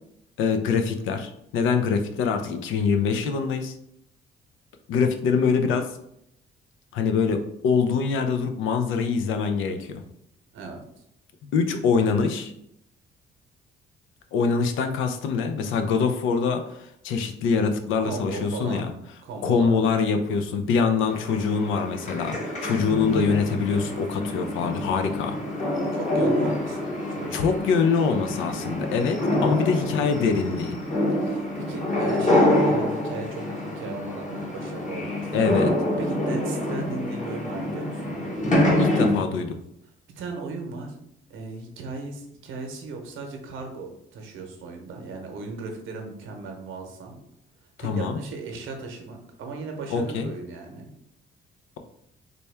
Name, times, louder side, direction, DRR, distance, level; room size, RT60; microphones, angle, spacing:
voice 1, 0.4-3.8 4.9-5.9 6.9-10.0 11.4-12.5 14.3-18.9 19.4-25.4 27.3-30.8 35.3-35.8 38.8-39.6 47.8-48.2 49.9-50.3, left 5 dB, 85° left, 7 dB, 0.5 m, -24 dB
voice 2, 18.0-18.9 19.2-19.8 25.9-27.5 29.5-29.7 31.2-35.3 36.0-38.3 40.1-41.0 41.3-47.2 47.8-50.9, right 3 dB, 80° right, 3 dB, 0.8 m, -36 dB
sound 1, 21.0-39.2, left 1 dB, 40° left, 1.1 m, -26 dB
4.1 x 2.2 x 3.3 m, 0.76 s
cardioid pair, 90°, 20 cm